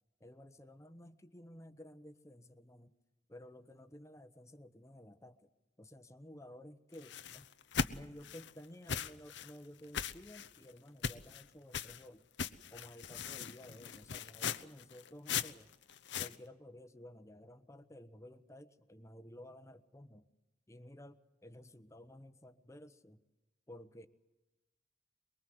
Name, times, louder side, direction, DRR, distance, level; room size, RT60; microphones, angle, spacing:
voice 1, 0.2-2.9 3.3-5.5 5.8-7.5 7.9-12.2 12.7-15.7 16.2-20.2 20.7-23.2 23.7-24.1, left 1 dB, 15° left, 11 dB, 1.0 m, -54 dB
sound 1, 6.9-8.5 8.9-9.5 9.9-10.6 11.0-11.4 11.7-12.0 12.4-16.4, left 7 dB, 80° left, 0.9 m, -39 dB
23.0 x 22.5 x 7.8 m, 1.0 s
head